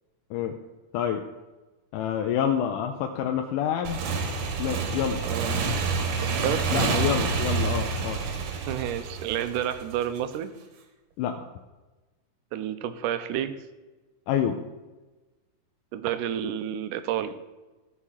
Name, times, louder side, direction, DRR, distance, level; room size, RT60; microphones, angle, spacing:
voice 1, 1.9-4.0 4.6-5.2 6.7-8.2 11.2-11.4 14.3-14.6, left 9 dB, 90° left, 4 dB, 2.2 m, -27 dB
Motorcycle / Engine, 3.8-10.2, right 4 dB, 65° right, 2.2 m, -28 dB
voice 2, 5.2-5.6 6.4-6.6 8.7-10.5 12.5-13.5 15.9-17.3, right 10 dB, 90° right, 12 dB, 2.2 m, -30 dB
14.5 x 4.9 x 5.7 m, 1.2 s
omnidirectional pair, 3.6 m